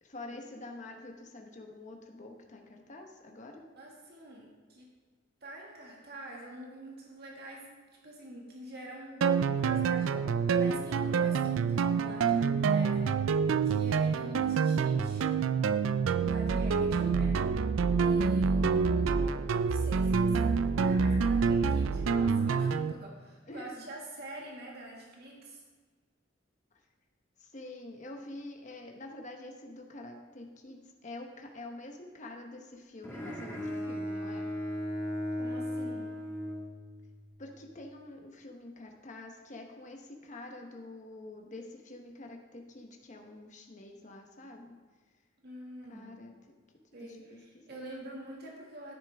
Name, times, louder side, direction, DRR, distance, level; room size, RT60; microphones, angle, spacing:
voice 1, 0.0-3.6 16.9-17.4 23.5-23.8 27.4-34.5 37.4-44.8 45.9-46.3 47.0-47.6, left 2 dB, 40° left, 2 dB, 1.0 m, -47 dB
voice 2, 3.8-4.9 5.4-7.6 8.0-13.2 13.6-15.2 16.2-17.3 18.0-25.6 35.4-36.1 45.4-46.1 46.9-48.9, right 1 dB, 55° right, -2 dB, 1.9 m, -46 dB
sound 1, 9.2-22.9, right 5 dB, 90° right, 0.4 m, -27 dB
Bowed string instrument, 33.0-37.3, equal, 10° left, 1.7 m, -36 dB
10.5 x 9.7 x 3.5 m, 1.4 s
head